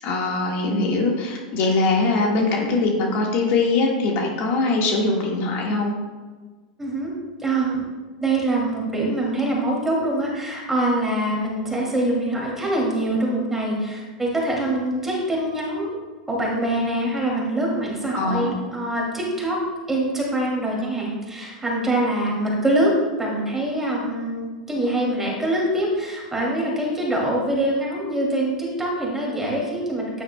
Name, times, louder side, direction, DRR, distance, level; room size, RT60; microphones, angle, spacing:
voice 1, 0.0-5.9 18.1-18.5, left 3 dB, 50° left, -1 dB, 1.6 m, -22 dB
voice 2, 6.8-7.1 7.4-7.8 8.2-16.0 16.3-19.6 19.9-22.9 23.2-30.2, right 1 dB, 10° right, -3 dB, 2.5 m, -24 dB
9.3 x 9.0 x 2.3 m, 1.4 s
hypercardioid pair, 120°, 4 cm